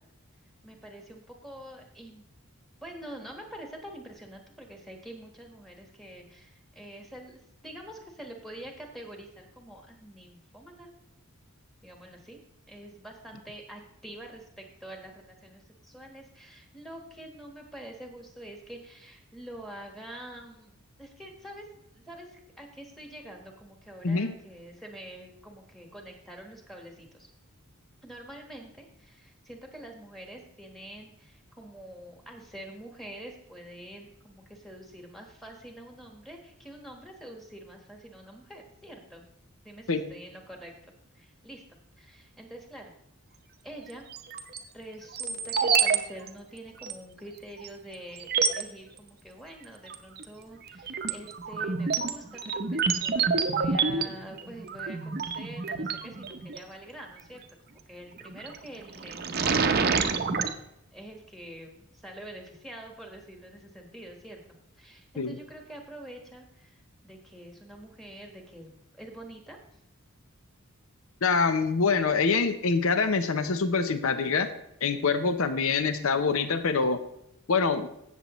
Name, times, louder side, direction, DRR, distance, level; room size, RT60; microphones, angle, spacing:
voice 1, 0.6-2.2 2.8-10.9 11.8-12.4 12.7-27.3 28.0-39.3 39.6-40.8 41.1-42.9 43.6-44.0 44.7-60.6 60.9-69.6, right 1 dB, ahead, 2 dB, 1.3 m, -46 dB
sound 1, 44.1-44.6 45.1-46.0 46.2-46.3 46.8-46.9 47.6-47.7 48.2-48.6 49.9-50.2 50.7-56.6 58.2-58.6 58.9-60.5, right 5 dB, 45° right, 0.7 m, -28 dB
voice 2, 71.2-74.5 74.8-77.0 77.5-77.9, left 4 dB, 70° left, 10 dB, 0.7 m, -25 dB
15.5 x 7.0 x 3.1 m, 0.81 s
head